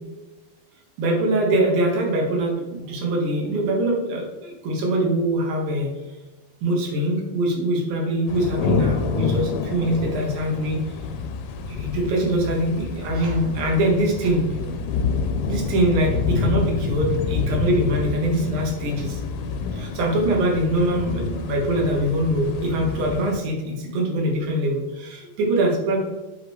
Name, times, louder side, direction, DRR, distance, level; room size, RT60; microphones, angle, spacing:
voice 1, 1.0-2.5 2.9-5.9 6.6-10.8 11.7-14.6 15.5-26.0, right 1 dB, 70° right, 0 dB, 3.0 m, -23 dB
sound 1, 8.3-23.4, left 5 dB, 85° left, 2.5 m, -28 dB
8.3 x 5.2 x 3.1 m, 1.1 s
omnidirectional pair, 4.5 m